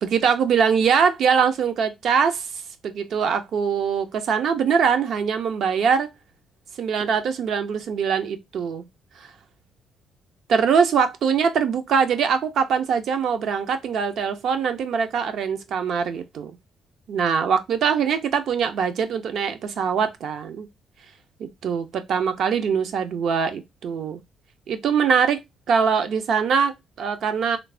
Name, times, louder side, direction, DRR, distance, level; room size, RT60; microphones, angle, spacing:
voice 1, 0.0-2.5 2.8-6.1 6.8-8.8 9.2-9.3 10.5-16.5 17.1-20.7 21.4-24.2 24.7-25.4 25.7-27.6, right 6 dB, 70° right, 0.5 m, -22 dB
3.2 x 2.0 x 2.4 m
cardioid pair, 90°, 0 cm